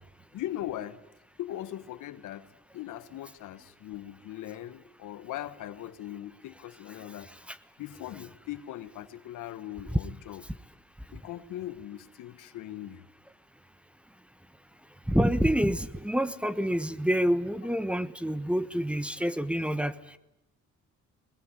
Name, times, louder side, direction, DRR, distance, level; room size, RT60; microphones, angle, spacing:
voice 1, 0.3-1.0 1.4-2.5 2.7-7.3 7.8-10.4 11.1-13.0, left 13 dB, 85° left, 13 dB, 1.4 m, -40 dB
voice 2, 15.1-19.9, equal, 5° right, 14 dB, 1.2 m, -27 dB
21.5 x 21.0 x 9.8 m, 0.86 s
cardioid pair, 90°, 30 cm